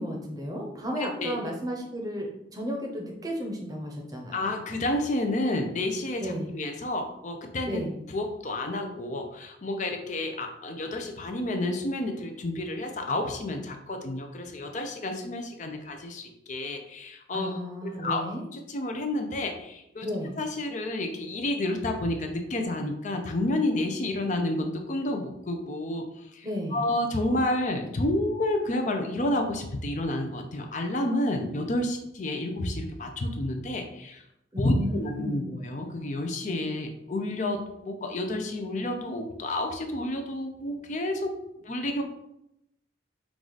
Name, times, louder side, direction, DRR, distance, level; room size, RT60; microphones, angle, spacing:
voice 1, 0.0-4.5 6.2-6.5 7.6-7.9 17.3-18.4 20.0-20.4 26.4-26.9 34.5-35.5, equal, 20° right, 1 dB, 0.7 m, -33 dB
voice 2, 4.3-7.8 8.1-17.5 17.8-18.2 18.5-20.1 20.4-26.1 26.3-34.2 34.6-41.4 41.6-42.0, left 1 dB, 40° left, 4 dB, 0.5 m, -30 dB
4.7 x 2.5 x 3.9 m, 0.82 s
head